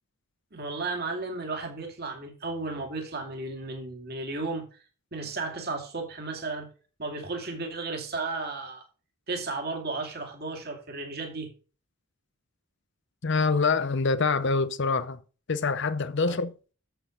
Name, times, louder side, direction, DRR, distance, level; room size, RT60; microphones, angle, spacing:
voice 1, 0.5-4.8 5.1-6.7 7.0-8.8 9.3-11.5 16.3-16.4, right 3 dB, 45° right, 2.5 m, -34 dB
voice 2, 13.2-15.2 15.5-16.5, left 4 dB, 55° left, 0.6 m, -25 dB
7.9 x 7.9 x 5.2 m
head